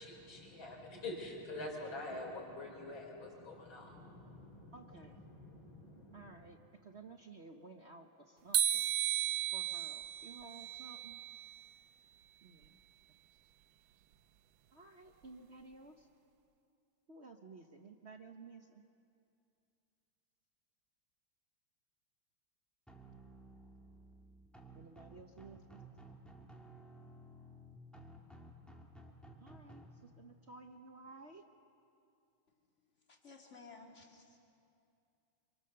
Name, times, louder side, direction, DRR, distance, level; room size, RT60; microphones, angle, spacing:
voice 1, 0.0-6.4, left 2 dB, 65° left, 0 dB, 4.8 m, -46 dB
voice 2, 4.7-5.2 6.1-8.8 9.5-11.2 12.4-12.8 14.7-16.1 17.1-18.8 24.7-25.8 29.4-31.4, right 3 dB, 45° right, 4 dB, 1.0 m, -54 dB
sound 1, 8.5-11.6, right 11 dB, 70° right, 1.4 m, -35 dB
sound 2, 22.9-29.9, right 1 dB, ahead, 2.3 m, -55 dB
voice 3, 33.1-34.4, left 4 dB, 35° left, 0 dB, 2.9 m, -56 dB
27.0 x 25.0 x 6.8 m, 2.6 s
omnidirectional pair, 2.4 m